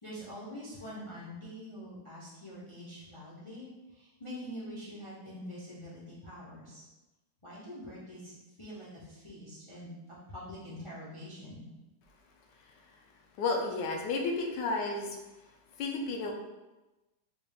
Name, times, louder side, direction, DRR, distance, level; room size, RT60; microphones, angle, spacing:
voice 1, 0.0-6.8 7.4-9.9 10.3-11.6, equal, 40° left, -8 dB, 0.4 m, -45 dB
voice 2, 13.4-15.2 15.8-16.3, left 3 dB, 85° left, 1 dB, 1.2 m, -32 dB
4.2 x 2.4 x 3.4 m, 1.1 s
omnidirectional pair, 1.9 m